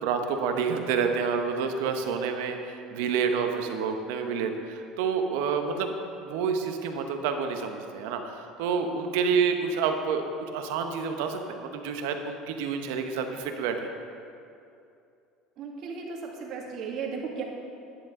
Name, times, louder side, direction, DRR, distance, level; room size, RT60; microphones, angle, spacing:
voice 1, 0.0-5.9 6.2-13.9, right 6 dB, 75° right, 5 dB, 1.0 m, -28 dB
voice 2, 15.6-17.4, right 5 dB, 55° right, -1 dB, 2.0 m, -35 dB
10.5 x 9.7 x 3.7 m, 2.6 s
supercardioid pair, 85°, 0 cm